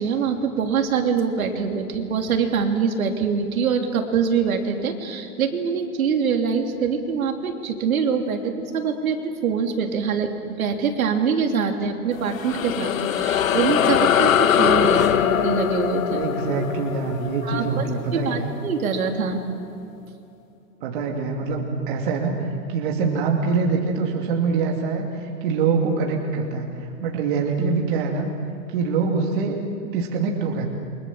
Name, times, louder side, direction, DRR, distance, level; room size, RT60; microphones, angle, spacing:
voice 1, 0.0-10.3 10.6-15.1 15.4-16.2 17.4-17.8 18.1-19.4, right 6 dB, 60° right, 3 dB, 3.3 m, -24 dB
sound 1, 12.1-18.9, left 9 dB, 55° left, 1.7 m, -22 dB
voice 2, 16.1-18.5 20.8-28.3 28.7-30.7, right 4 dB, 35° right, 1 dB, 2.5 m, -24 dB
29.0 x 25.0 x 7.4 m, 2.6 s
hypercardioid pair, 170°, 47 cm